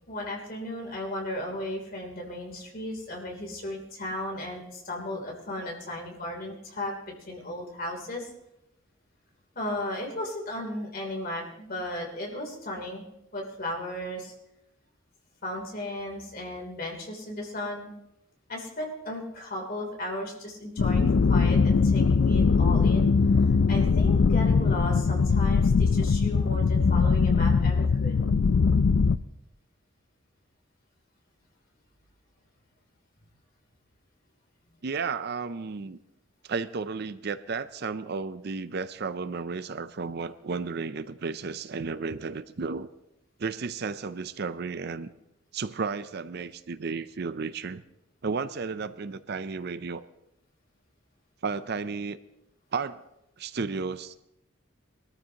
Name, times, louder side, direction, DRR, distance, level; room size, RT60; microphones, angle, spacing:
voice 1, 0.1-8.3 9.5-13.0 13.3-14.3 15.4-17.9 18.5-23.1 23.7-28.2, left 1 dB, 45° left, 0 dB, 3.2 m, -35 dB
sound 1, 20.8-29.2, left 4 dB, 65° left, 0.4 m, -21 dB
voice 2, 34.8-36.0 36.4-42.9 43.4-45.1 45.5-47.8 48.2-50.0 51.4-52.2 52.7-53.0 53.4-54.1, right 4 dB, 50° right, 13 dB, 0.5 m, -33 dB
22.5 x 13.5 x 2.9 m, 0.86 s
head